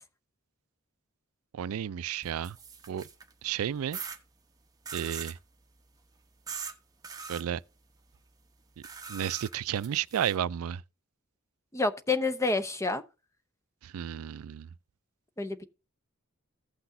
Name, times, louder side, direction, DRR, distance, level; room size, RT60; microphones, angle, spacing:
voice 1, 1.5-2.6 2.9-3.1 3.4-4.0 4.9-5.4 7.3-7.6 9.1-10.8 13.8-14.7, right 9 dB, 85° right, 0.4 m, -32 dB
sound 1, 2.2-3.3 3.9-4.2 4.9-5.4 6.5-6.7 7.0-7.4 8.8-10.4, right 5 dB, 15° right, 0.9 m, -41 dB
voice 2, 11.7-13.0 15.4-15.6, left 3 dB, 15° left, 0.7 m, -28 dB
16.0 x 6.0 x 2.6 m
head